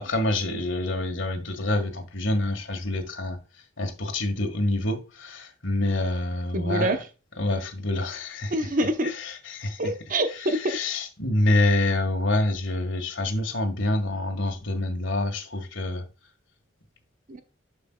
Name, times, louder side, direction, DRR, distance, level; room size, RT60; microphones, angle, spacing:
voice 1, 0.0-3.4 3.8-7.0 7.4-8.7 9.0-9.8 10.4-16.1, left 2 dB, 70° left, 1.7 m, -27 dB
voice 2, 6.5-7.0 8.5-9.1 9.8-10.8 17.3-17.4, right 1 dB, 45° right, 0.9 m, -26 dB
11.5 x 5.4 x 2.3 m
head